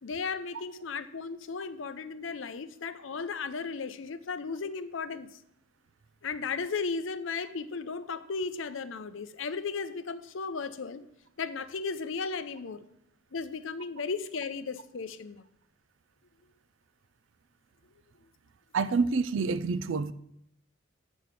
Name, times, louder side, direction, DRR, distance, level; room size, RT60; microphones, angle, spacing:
voice 1, 0.0-5.4 6.2-11.1 11.4-12.8 13.3-15.4, left 4 dB, 70° left, 13 dB, 0.6 m, -35 dB
voice 2, 18.7-20.1, right 4 dB, 70° right, 14 dB, 0.5 m, -27 dB
7.6 x 6.2 x 6.9 m, 0.74 s
head